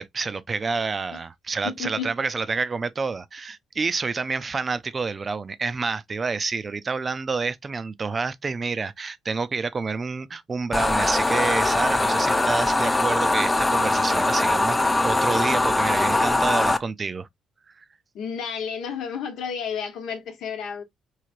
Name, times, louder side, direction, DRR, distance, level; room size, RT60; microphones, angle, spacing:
voice 1, 0.0-17.3 17.8-17.9, right 4 dB, 40° right, 0.4 m, -28 dB
voice 2, 1.6-2.1 18.1-20.8, left 7 dB, 75° left, 0.9 m, -31 dB
sound 1, 10.7-16.8, left 2 dB, 20° left, 0.4 m, -21 dB
3.2 x 2.8 x 2.4 m
supercardioid pair, 65°, 0 cm